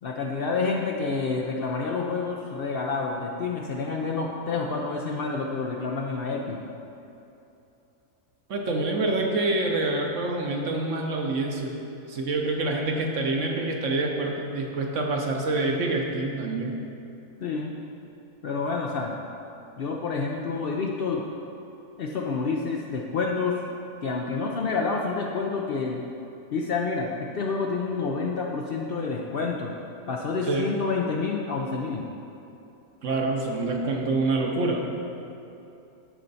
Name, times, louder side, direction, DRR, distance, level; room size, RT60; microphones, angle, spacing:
voice 1, 0.0-6.6 17.4-17.7 18.4-19.2 19.8-21.2 22.0-23.7 24.0-26.0 26.5-29.7 30.1-32.1, left 4 dB, 90° left, 0 dB, 0.5 m, -28 dB
voice 2, 8.5-11.8 12.1-16.8 30.5-30.7 33.0-34.8, right 2 dB, 60° right, 1 dB, 1.0 m, -26 dB
13.0 x 4.3 x 4.0 m, 2.9 s
omnidirectional pair, 1.6 m